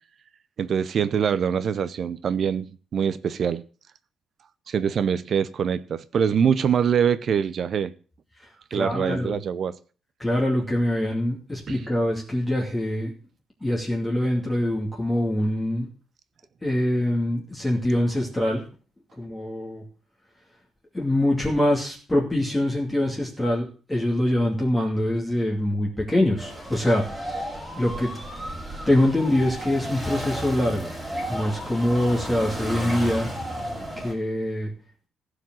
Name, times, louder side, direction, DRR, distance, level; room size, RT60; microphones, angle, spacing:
voice 1, 0.6-3.6 4.7-7.9 8.7-9.7 11.7-11.8, right 7 dB, 50° right, 0.7 m, -24 dB
voice 2, 8.4-9.4 10.2-13.1 13.6-15.9 16.6-18.6 19.2-19.8 20.9-27.4 27.8-28.2 28.9-30.9 31.3-33.3 33.7-34.7, left 1 dB, 10° left, 2.6 m, -24 dB
sound 1, 26.4-34.1, equal, 5° right, 3.7 m, -33 dB
15.5 x 5.1 x 7.7 m
cardioid pair, 140°, 0 cm